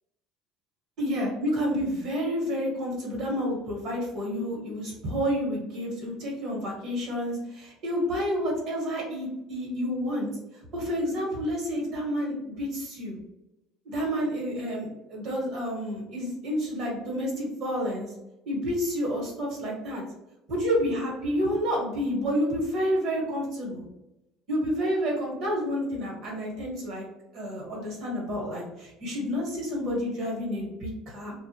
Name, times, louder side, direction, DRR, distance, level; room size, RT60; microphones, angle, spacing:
voice 1, 1.0-10.3 10.7-13.2 13.8-18.1 18.4-20.0 20.5-23.8 24.5-27.0 27.3-31.3, equal, 60° right, -2 dB, 1.2 m, -29 dB
2.4 x 2.1 x 2.7 m, 0.92 s
cardioid pair, 115°, 0 cm